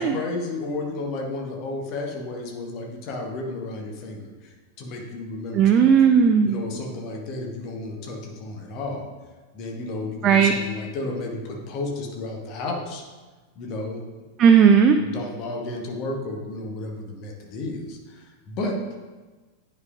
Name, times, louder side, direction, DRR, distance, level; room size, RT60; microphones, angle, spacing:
voice 1, 0.0-6.0 6.4-9.1 9.5-13.0 13.5-14.0 15.0-18.8, left 2 dB, 40° left, 1 dB, 1.1 m, -32 dB
voice 2, 5.5-6.6 10.2-10.5 14.4-15.0, right 7 dB, 30° right, 6 dB, 0.4 m, -15 dB
9.6 x 5.3 x 2.5 m, 1.3 s
figure-of-eight pair, 90°, 0 cm